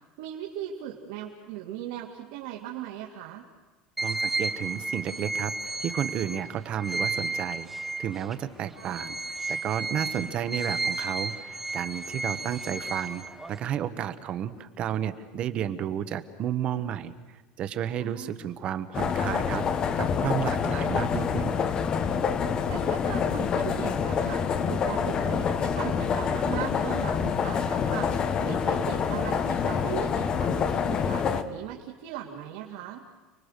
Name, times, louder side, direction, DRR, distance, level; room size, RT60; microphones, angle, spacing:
voice 1, 0.2-3.4 8.7-9.0 18.0-18.4 22.7-28.1 28.4-33.0, right 10 dB, 80° right, -2 dB, 2.7 m, -38 dB
sound 1, 4.0-8.3 8.8-13.6, right 3 dB, 5° right, 0.9 m, -33 dB
voice 2, 4.0-7.7 8.0-13.2 13.5-21.6, right 10 dB, 35° right, 12 dB, 1.2 m, -32 dB
sound 2, 18.9-31.4, left 6 dB, 25° left, 1.0 m, -27 dB
30.0 x 21.5 x 6.6 m, 1.2 s
cardioid pair, 180°, 3 cm